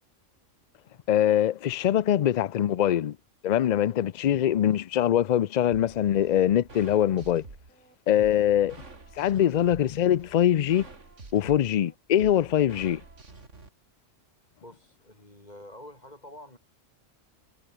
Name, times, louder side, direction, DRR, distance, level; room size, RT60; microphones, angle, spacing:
voice 1, 1.1-3.2 3.4-7.4 8.1-8.8 9.2-10.9 11.3-13.0, left 11 dB, 75° left, 0.4 m, -23 dB
sound 1, 5.7-13.7, right 3 dB, 70° right, 3.5 m, -48 dB
voice 2, 14.6-16.6, left 1 dB, 30° left, 6.5 m, -47 dB
omnidirectional pair, 1.3 m